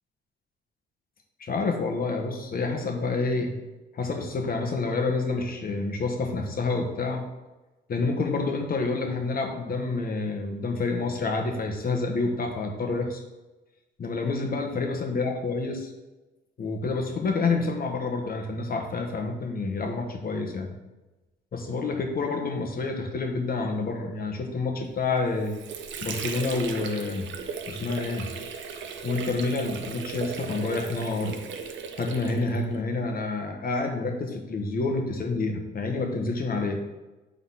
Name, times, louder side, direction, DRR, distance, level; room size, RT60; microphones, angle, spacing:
voice 1, 1.4-3.5 3.9-7.3 7.9-13.2 14.0-15.9 16.6-20.7 21.5-25.5 26.0-27.3 27.7-28.3 29.0-31.4 32.0-36.8, left 3 dB, 50° left, 3 dB, 1.3 m, -28 dB
Water / Sink (filling or washing), 25.1-32.8, right 6 dB, 70° right, 0.8 m, -36 dB
6.2 x 4.1 x 5.6 m, 1.1 s
cardioid pair, 90°, 20 cm